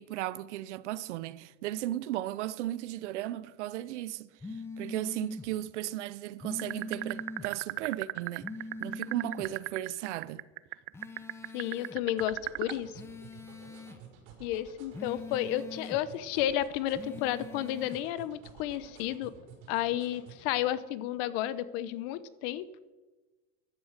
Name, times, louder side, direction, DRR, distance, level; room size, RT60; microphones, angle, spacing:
voice 1, 0.0-8.5 8.8-10.4, right 14 dB, 85° right, 0.8 m, -36 dB
sound 1, 4.4-5.5 6.4-7.5 8.4-9.5 10.9-12.0 12.9-14.0 14.9-16.0 16.9-18.0, left 2 dB, 5° left, 1.0 m, -42 dB
sound 2, 6.6-12.8, right 24 dB, 40° right, 0.5 m, -34 dB
voice 2, 11.5-12.9 14.4-19.3 19.7-22.6, left 12 dB, 55° left, 1.0 m, -32 dB
sound 3, 12.2-20.5, right 7 dB, 55° right, 5.1 m, -52 dB
14.5 x 11.5 x 6.6 m
supercardioid pair, 150°, 34 cm